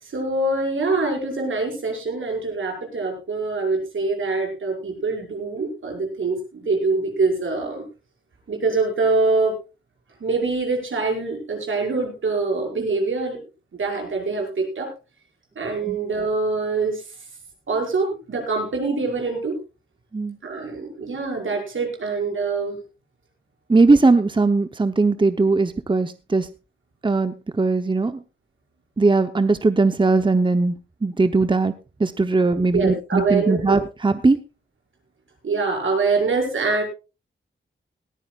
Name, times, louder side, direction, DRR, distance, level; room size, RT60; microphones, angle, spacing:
voice 1, 0.0-7.8 8.5-9.6 10.2-13.4 13.7-14.9 15.6-17.1 17.7-19.6 20.4-22.8 32.7-33.8 35.4-36.8, right 3 dB, 85° right, 2 dB, 5.7 m, -24 dB
voice 2, 23.7-26.5 27.0-28.2 29.0-30.7 31.0-31.7 32.0-34.4, right 3 dB, 25° right, 10 dB, 0.8 m, -19 dB
19.5 x 14.5 x 2.4 m, 0.30 s
wide cardioid pair, 80°, 20 cm